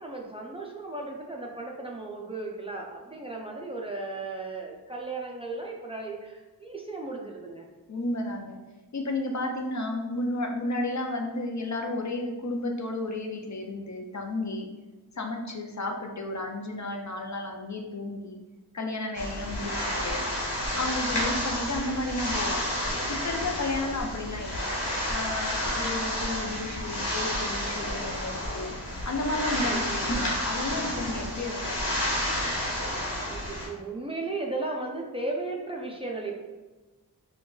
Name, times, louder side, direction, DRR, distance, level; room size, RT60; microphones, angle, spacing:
voice 1, 0.0-7.7 23.7-23.9 29.7-30.2 32.9-36.4, right 3 dB, 15° right, -2 dB, 0.4 m, -36 dB
voice 2, 7.9-8.6 8.9-14.7 15.2-18.4 18.7-20.2 20.7-22.7 23.1-24.7 25.1-28.7 29.1-32.1, left 2 dB, 45° left, 2 dB, 0.5 m, -32 dB
sound 1, 19.1-33.7, equal, 85° left, 1.1 m, -30 dB
5.1 x 2.3 x 2.3 m, 1.2 s
wide cardioid pair, 60°, 40 cm